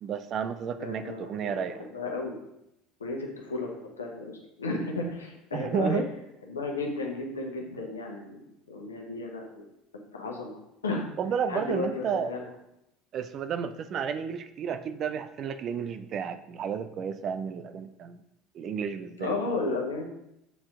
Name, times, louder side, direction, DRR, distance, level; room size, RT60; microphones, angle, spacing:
voice 1, 0.0-1.9 5.5-6.1 11.2-12.3 13.1-18.2 18.5-19.3, right 7 dB, 45° right, 11 dB, 0.4 m, -32 dB
voice 2, 0.8-2.4 3.0-6.0 6.5-8.4 8.7-9.7 10.1-11.1 11.5-12.4 19.2-20.0, left 3 dB, 80° left, 1 dB, 1.0 m, -33 dB
6.8 x 4.4 x 3.7 m, 0.83 s
figure-of-eight pair, 65°, 0 cm